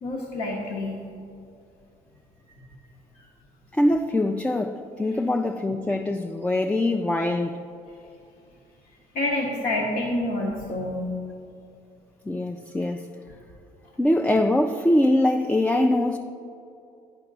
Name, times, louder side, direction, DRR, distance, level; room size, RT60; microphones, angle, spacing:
voice 1, 0.0-1.0 3.1-3.3 5.1-5.2 9.1-11.1, left 1 dB, 65° left, 1.0 m, -28 dB
voice 2, 3.7-7.6 12.3-13.1 14.0-16.2, left 1 dB, 10° left, 0.3 m, -23 dB
10.5 x 4.5 x 3.9 m
cardioid pair, 85°, 16 cm